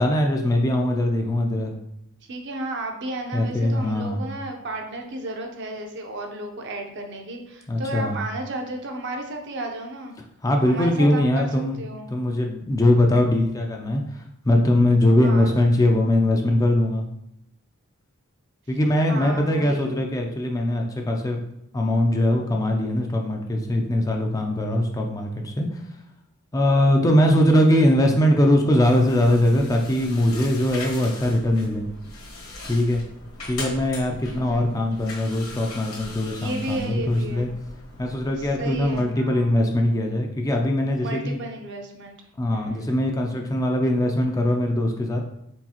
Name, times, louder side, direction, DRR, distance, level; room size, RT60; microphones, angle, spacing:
voice 1, 0.0-1.7 3.3-4.2 7.7-8.2 10.4-11.8 12.1-17.0 18.7-21.4 21.7-25.8 26.5-31.8 32.7-33.0 33.5-37.5 38.0-41.4 42.4-45.2, left 1 dB, 15° left, 2 dB, 0.4 m, -21 dB
voice 2, 2.3-10.2 10.6-11.5 11.8-12.1 15.2-15.6 19.1-19.9 34.3-35.0 36.3-37.5 38.4-39.6 41.0-42.2 42.5-42.9, right 1 dB, 50° right, 4 dB, 0.6 m, -33 dB
sound 1, 28.8-39.0, left 2 dB, 65° left, 1.2 m, -40 dB
4.5 x 4.0 x 2.9 m, 0.79 s
head